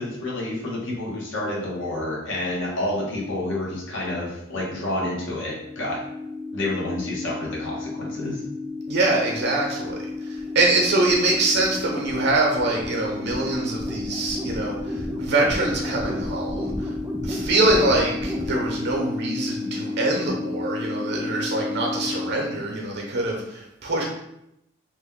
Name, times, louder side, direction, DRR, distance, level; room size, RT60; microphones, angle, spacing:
voice 1, 0.0-6.0 6.5-8.4, left 1 dB, 70° left, -3 dB, 0.9 m, -29 dB
sound 1, 5.4-22.3, left 2 dB, 15° right, 0.4 m, -31 dB
voice 2, 8.9-16.9 17.2-24.0, right 2 dB, 60° right, 0 dB, 0.7 m, -24 dB
2.9 x 2.1 x 3.6 m, 0.81 s
head